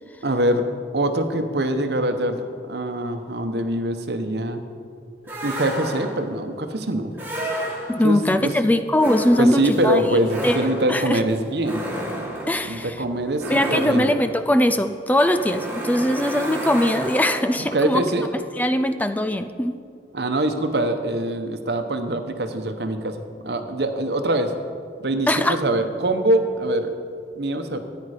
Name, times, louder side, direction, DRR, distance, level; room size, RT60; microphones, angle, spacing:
voice 1, 0.2-0.7 0.9-4.6 5.4-7.1 8.0-8.5 9.4-11.8 12.6-14.1 17.6-18.3 20.1-24.5 25.0-26.9 27.4-27.8, right 1 dB, 65° right, 7 dB, 1.0 m, -23 dB
sound 1, 5.3-6.3 7.1-8.2 8.9-17.7, equal, 10° right, 1.8 m, -31 dB
voice 2, 7.9-10.1 10.4-10.6 10.9-11.2 12.5-13.0 13.5-18.0 18.6-19.7 25.3-25.6, left 1 dB, 10° left, 9 dB, 0.4 m, -21 dB
14.0 x 9.5 x 5.0 m, 2.3 s
head